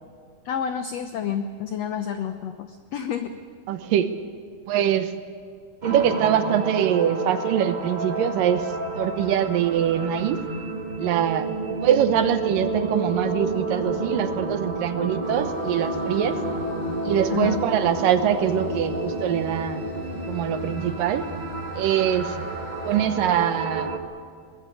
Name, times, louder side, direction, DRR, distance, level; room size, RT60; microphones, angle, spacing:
voice 1, 0.4-3.4 17.3-17.6, left 8 dB, 80° left, 9 dB, 1.4 m, -29 dB
voice 2, 3.7-4.1 4.7-5.1 5.8-8.7 9.0-10.4 11.0-11.5 11.8-16.4 17.0-19.8 20.3-21.2 21.8-22.4 22.9-23.9, right 10 dB, 75° right, 11 dB, 2.5 m, -23 dB
sound 1, 5.8-24.0, right 2 dB, 55° right, 0.5 m, -30 dB
Train, 15.2-23.6, left 2 dB, 25° left, 7.0 m, -41 dB
22.5 x 19.5 x 8.5 m, 2.1 s
omnidirectional pair, 4.2 m